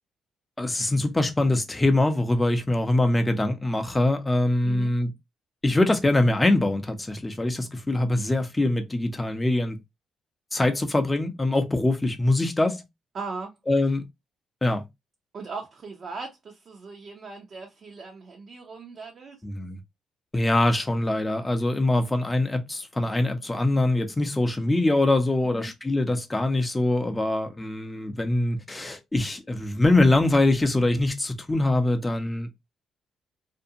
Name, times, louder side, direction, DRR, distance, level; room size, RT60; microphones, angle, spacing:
voice 1, 0.6-5.1 5.6-9.8 10.5-12.8 13.7-14.0 14.6-14.8 19.4-19.8 20.3-32.5, left 2 dB, 15° left, 0.6 m, -23 dB
voice 2, 13.1-13.5 15.3-19.4 25.4-25.7, right 4 dB, 50° right, 0.7 m, -38 dB
2.5 x 2.2 x 2.7 m
cardioid pair, 90°, 0 cm